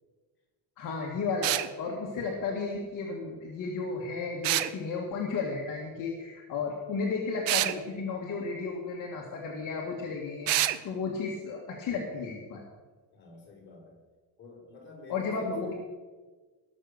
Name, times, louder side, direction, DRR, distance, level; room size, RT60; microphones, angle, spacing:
voice 1, 0.8-12.6 15.1-15.7, left 4 dB, 50° left, -1 dB, 2.0 m, -33 dB
sound 1, 1.4-1.7 4.4-4.7 7.5-7.8 10.5-10.8, right 14 dB, 85° right, 0.8 m, -26 dB
voice 2, 13.1-14.0 14.4-15.7, left 3 dB, 30° left, -3 dB, 4.8 m, -49 dB
19.5 x 6.8 x 6.6 m, 1.4 s
cardioid pair, 170°, 41 cm